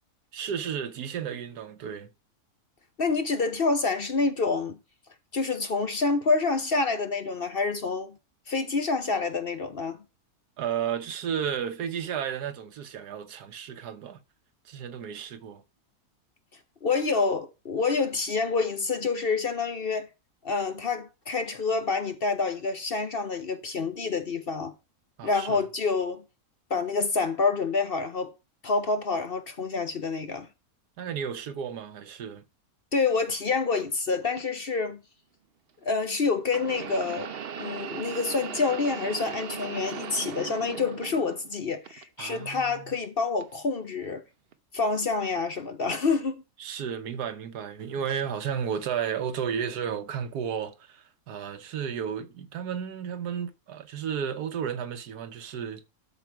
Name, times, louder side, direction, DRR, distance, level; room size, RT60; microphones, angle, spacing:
voice 1, 0.3-2.1 10.6-14.2 14.6-15.6 25.2-25.6 31.0-32.4 42.2-43.0 46.6-55.9, right 8 dB, 85° right, 1.5 m, -33 dB
voice 2, 3.0-4.8 5.3-8.1 8.5-10.0 16.8-20.1 20.4-24.7 25.2-26.2 26.7-28.3 28.6-30.5 32.9-35.0 35.8-37.3 37.6-44.2 44.7-46.4, left 4 dB, 45° left, 0.9 m, -27 dB
sound 1, 34.4-34.5 36.5-41.5 41.8-42.7 43.4-43.5 44.5-44.6, right 7 dB, 50° right, 0.8 m, -38 dB
12.5 x 5.4 x 4.6 m
omnidirectional pair, 1.6 m